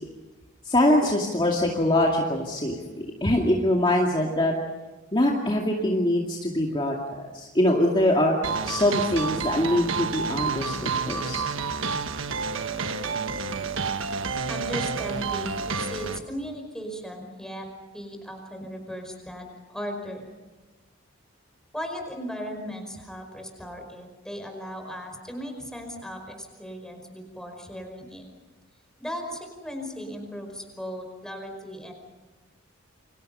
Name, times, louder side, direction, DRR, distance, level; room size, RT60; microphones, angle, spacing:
voice 1, 0.6-4.5 5.1-8.3 8.6-11.4, left 1 dB, 25° left, -1 dB, 2.4 m, -23 dB
sound 1, 8.4-16.2, right 5 dB, 85° right, 1.3 m, -29 dB
voice 2, 14.5-17.7 17.9-20.3 21.7-28.2 29.0-31.9, equal, 5° left, 4 dB, 5.1 m, -37 dB
29.0 x 25.5 x 5.7 m, 1.3 s
head